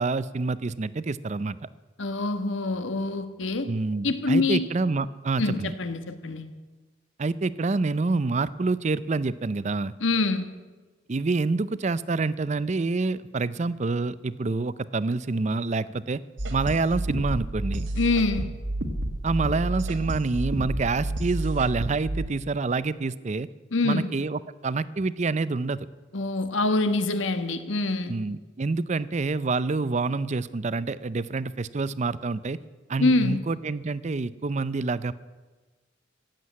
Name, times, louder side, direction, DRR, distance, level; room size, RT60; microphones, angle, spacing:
voice 1, 0.0-1.7 3.6-5.7 7.2-9.9 11.1-16.2 16.5-17.9 19.2-23.5 23.8-25.8 28.1-32.6 32.9-35.1, right 3 dB, 35° right, 17 dB, 0.5 m, -27 dB
voice 2, 2.0-3.7 4.0-4.7 5.4-6.4 10.0-10.5 18.0-18.5 23.7-24.1 26.1-28.1 33.0-33.4, left 2 dB, 85° left, 10 dB, 1.3 m, -25 dB
sound 1, 16.4-22.3, right 1 dB, 70° right, 1.6 m, -30 dB
16.0 x 7.7 x 9.4 m, 1.3 s
head